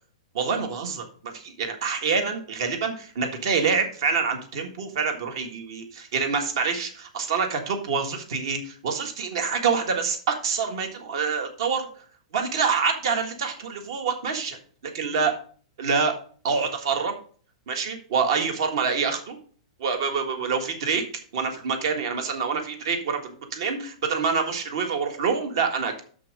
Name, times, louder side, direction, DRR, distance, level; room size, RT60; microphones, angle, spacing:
voice 1, 0.3-11.8 12.3-14.5 14.9-15.3 15.8-16.1 16.4-17.1 17.7-19.4 19.8-21.0 21.3-26.0, right 5 dB, 50° right, 5 dB, 1.6 m, -26 dB
6.4 x 6.0 x 6.0 m, 0.43 s
supercardioid pair, 180°, 3 cm